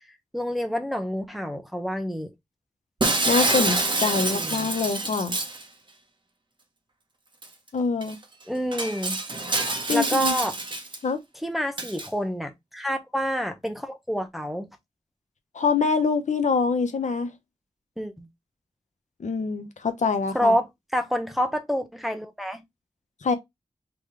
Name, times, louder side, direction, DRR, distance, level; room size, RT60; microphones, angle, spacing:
voice 1, 0.3-2.3 4.2-4.7 8.5-9.2 9.9-10.5 11.4-14.7 18.0-18.3 20.3-22.6, equal, ahead, 0.9 m, -28 dB
Shatter, 3.0-5.6 7.4-7.5 8.0-8.1 8.7-11.0 11.8-12.1, right 2 dB, 40° right, 1.2 m, -26 dB
voice 2, 3.3-5.4 7.7-8.2 9.9-10.3 11.0-11.2 15.5-17.3 19.2-20.5 23.2-23.3, left 5 dB, 70° left, 0.8 m, -25 dB
3.8 x 3.0 x 3.2 m
wide cardioid pair, 65°, 13 cm